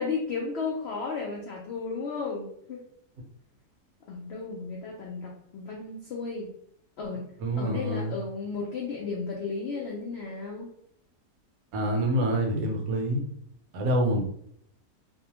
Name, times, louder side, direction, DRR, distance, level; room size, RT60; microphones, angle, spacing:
voice 1, 0.0-2.8 4.1-6.5 7.0-7.2 7.6-10.7, left 4 dB, 90° left, -2 dB, 0.5 m, -34 dB
voice 2, 7.4-8.2 11.7-13.2 13.7-14.2, right 1 dB, 70° right, 1 dB, 1.0 m, -26 dB
2.6 x 2.1 x 2.9 m, 0.68 s
omnidirectional pair, 1.7 m